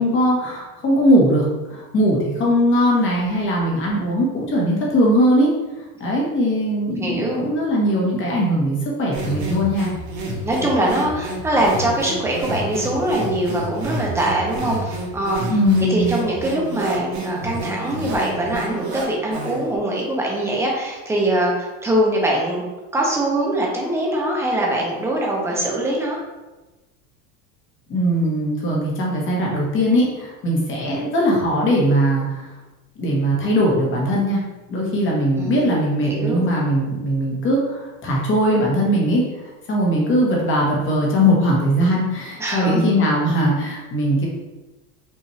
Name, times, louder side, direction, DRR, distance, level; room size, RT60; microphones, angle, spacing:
voice 1, 0.0-5.5 6.0-9.9 15.5-16.2 27.9-32.5 33.0-34.4 34.7-39.2 39.7-44.3, equal, 25° left, -3 dB, 1.1 m, -20 dB
voice 2, 7.0-7.4 10.4-15.4 15.8-22.6 22.9-26.2 35.4-35.7 36.0-36.4 42.4-42.8, right 1 dB, 5° right, -2 dB, 0.5 m, -22 dB
sound 1, 9.1-19.7, right 1 dB, 65° right, 1.4 m, -30 dB
5.5 x 2.5 x 3.1 m, 1.1 s
cardioid pair, 160°, 44 cm